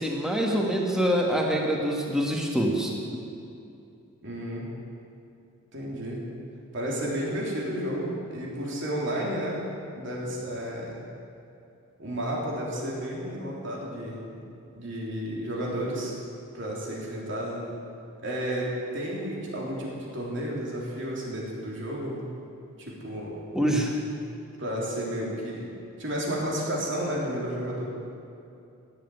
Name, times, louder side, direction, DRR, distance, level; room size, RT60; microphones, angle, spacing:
voice 1, 0.0-2.9 23.5-23.9, equal, 5° right, -1 dB, 1.8 m, -25 dB
voice 2, 4.2-4.7 5.7-6.2 6.7-11.0 12.0-14.2 14.7-16.2 16.5-17.7 18.2-22.2 22.8-23.4 24.6-25.7 26.0-27.8, equal, 55° right, -3 dB, 3.6 m, -32 dB
17.0 x 7.7 x 9.3 m, 2.7 s
head